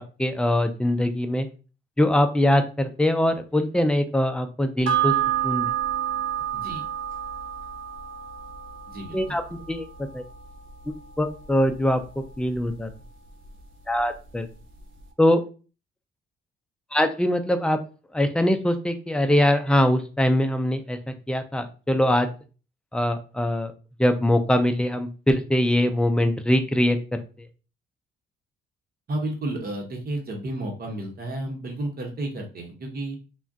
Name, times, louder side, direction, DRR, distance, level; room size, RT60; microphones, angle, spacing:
voice 1, 0.0-1.5 2.0-5.1 5.4-5.7 9.1-9.4 9.7-9.9 10.1-10.2 11.2-12.9 13.9-14.5 15.2-15.4 16.9-17.8 18.1-22.3 22.9-23.7 24.0-27.2, left 1 dB, 5° left, 7 dB, 0.4 m, -22 dB
sound 1, 4.9-13.6 14.0-14.1, right 11 dB, 80° right, 0.6 m, -30 dB
voice 2, 6.5-6.9 8.9-9.4 29.1-33.2, right 1 dB, 50° right, 1 dB, 1.0 m, -32 dB
2.4 x 2.2 x 3.5 m, 0.35 s
cardioid pair, 90°, 20 cm